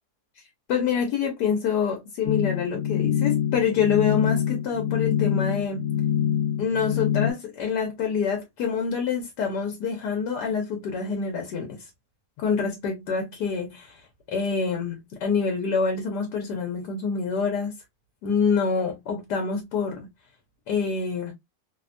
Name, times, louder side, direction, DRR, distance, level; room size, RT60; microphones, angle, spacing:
voice 1, 0.7-5.9 6.6-11.9 12.4-14.0 14.3-17.7 18.2-20.1 20.7-21.3, left 6 dB, 85° left, 1.3 m, -26 dB
sound 1, 2.3-7.3, left 9 dB, 65° left, 0.9 m, -25 dB
3.0 x 2.1 x 2.4 m
omnidirectional pair, 1.7 m